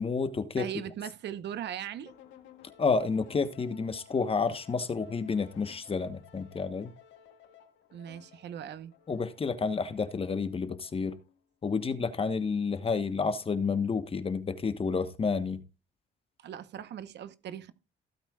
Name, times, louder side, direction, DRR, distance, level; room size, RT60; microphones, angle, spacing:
voice 1, 0.0-0.7 2.8-6.9 9.1-11.2 11.6-15.6, left 5 dB, 30° left, 1.2 m, -30 dB
voice 2, 0.6-2.1 7.9-8.9 16.4-17.7, right 9 dB, 65° right, 1.1 m, -39 dB
sound 1, 2.1-11.5, left 9 dB, 85° left, 1.9 m, -57 dB
16.0 x 8.5 x 2.4 m
cardioid pair, 105°, 19 cm